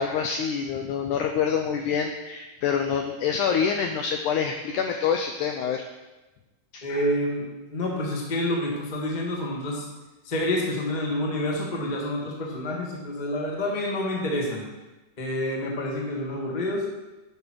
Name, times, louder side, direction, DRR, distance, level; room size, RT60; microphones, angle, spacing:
voice 1, 0.0-5.8 6.7-7.1, left 7 dB, 85° left, 5 dB, 1.7 m, -26 dB
voice 2, 6.8-9.8 10.2-14.6 15.2-16.8, left 1 dB, 30° left, -2 dB, 0.8 m, -28 dB
11.0 x 5.6 x 6.2 m, 1.1 s
omnidirectional pair, 4.2 m